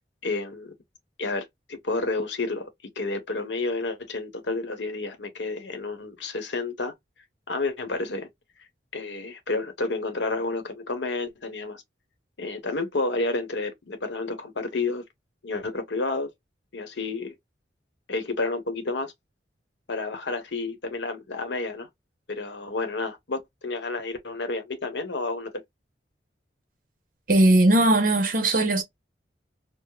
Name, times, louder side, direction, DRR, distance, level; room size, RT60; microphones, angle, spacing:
voice 1, 0.2-0.7 1.2-2.7 3.0-6.9 7.5-8.3 8.9-11.8 12.4-15.0 15.4-16.3 16.7-17.3 18.1-19.1 19.9-21.9 22.3-25.5, left 3 dB, 80° left, 0.9 m, -30 dB
voice 2, 27.3-28.8, right 1 dB, 50° right, 0.9 m, -19 dB
4.7 x 2.0 x 2.2 m
head